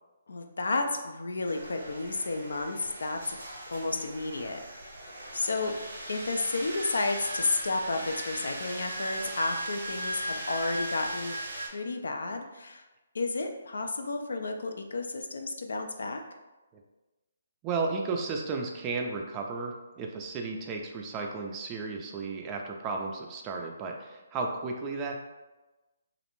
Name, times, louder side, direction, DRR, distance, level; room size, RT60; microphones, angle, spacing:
voice 1, 0.3-3.4 3.7-4.6 5.3-5.8 6.1-12.8 13.1-16.2, left 3 dB, 80° left, 5 dB, 0.3 m, -32 dB
sound 1, 1.4-11.7, right 1 dB, 85° right, 0.6 m, -38 dB
voice 2, 17.6-25.2, right 4 dB, 20° right, 1 dB, 0.3 m, -34 dB
2.5 x 2.0 x 2.9 m, 1.1 s
hypercardioid pair, 150°, 0 cm